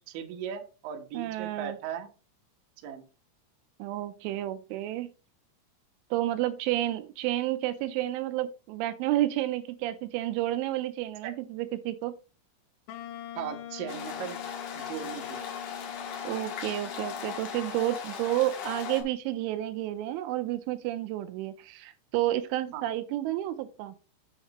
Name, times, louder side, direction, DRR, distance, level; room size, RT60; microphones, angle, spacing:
voice 1, 0.1-2.1 2.8-3.0 11.2-11.3 13.4-14.4 14.7-15.5 22.7-22.9, right 9 dB, 70° right, 3 dB, 2.2 m, -38 dB
voice 2, 1.1-1.8 3.8-5.1 6.1-12.2 16.2-23.9, right 14 dB, 85° right, 10 dB, 3.0 m, -30 dB
Wind instrument woodwind instrument, 12.9-17.9, left 10 dB, 85° left, 3.4 m, -44 dB
sound 1, 13.9-19.0, left 7 dB, 70° left, 2.0 m, -38 dB
8.0 x 8.0 x 3.0 m, 0.33 s
omnidirectional pair, 5.6 m